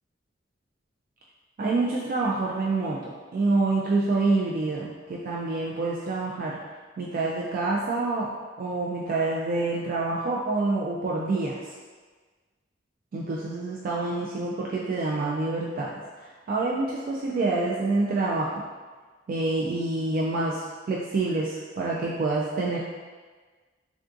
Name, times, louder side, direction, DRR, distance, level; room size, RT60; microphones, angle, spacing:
voice 1, 1.6-6.6 7.0-8.3 8.6-11.6 13.1-15.9 16.2-18.6 19.3-20.6 20.9-22.8, right 3 dB, 50° right, -4 dB, 0.3 m, -27 dB
3.5 x 2.4 x 2.5 m, 1.4 s
head